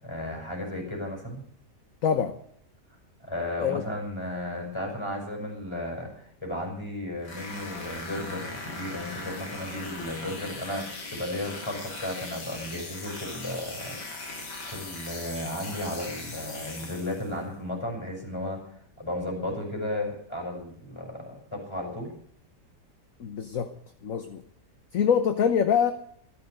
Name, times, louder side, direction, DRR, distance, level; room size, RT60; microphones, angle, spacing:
voice 1, 0.0-1.4 3.2-14.0 14.7-22.1, left 1 dB, 15° left, 0 dB, 6.2 m, -34 dB
voice 2, 2.0-2.3 3.6-3.8 23.2-23.7 24.0-24.4 24.9-25.9, left 7 dB, 55° left, 9 dB, 1.3 m, -24 dB
sound 1, 7.2-17.4, left 2 dB, 75° left, 3.3 m, -39 dB
13.5 x 13.5 x 6.6 m, 0.66 s
omnidirectional pair, 1.8 m